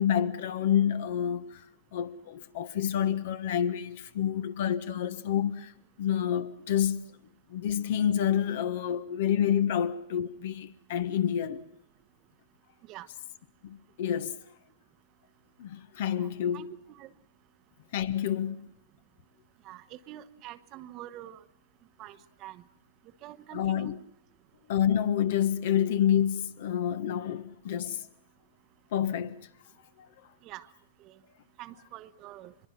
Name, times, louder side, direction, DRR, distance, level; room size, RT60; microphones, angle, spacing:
voice 1, 0.0-1.6 1.9-5.7 6.0-7.0 7.5-11.6 13.6-14.3 15.6-16.7 17.9-18.6 23.5-24.0 24.7-28.0 28.9-29.3, left 9 dB, 60° left, 1.3 m, -28 dB
voice 2, 16.2-17.1 19.6-21.4 22.0-22.6 23.2-23.9 30.4-30.7 31.0-31.2 31.6-32.5, right 13 dB, 40° right, 1.0 m, -46 dB
25.0 x 22.0 x 6.0 m
hypercardioid pair, 110°, 0 cm